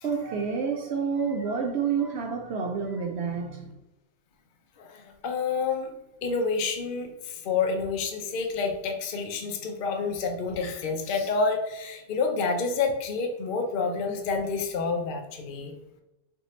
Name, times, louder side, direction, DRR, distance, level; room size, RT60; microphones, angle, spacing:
voice 1, 0.0-3.7, right 6 dB, 65° right, 2 dB, 0.7 m, -29 dB
voice 2, 4.8-5.9 6.2-15.7, left 4 dB, 55° left, 4 dB, 0.6 m, -28 dB
3.7 x 2.7 x 4.2 m, 0.98 s
omnidirectional pair, 1.5 m